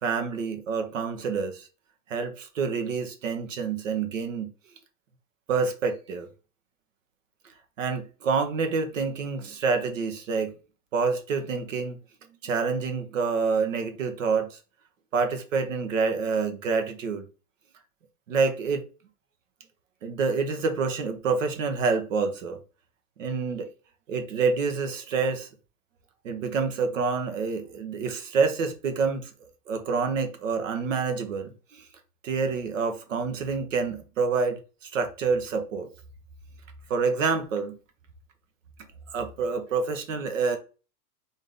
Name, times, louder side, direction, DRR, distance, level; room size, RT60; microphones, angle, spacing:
voice 1, 0.0-1.7 2.1-4.5 5.5-6.3 7.8-10.5 10.9-12.0 12.4-14.6 15.1-17.3 18.3-18.8 20.0-22.6 23.2-23.7 24.1-25.5 26.2-29.3 29.7-31.8 32.2-34.6 34.9-35.9 36.9-37.8 39.1-40.6, right 5 dB, 55° right, 0.8 m, -27 dB
3.6 x 2.6 x 3.6 m
hypercardioid pair, 170°, 48 cm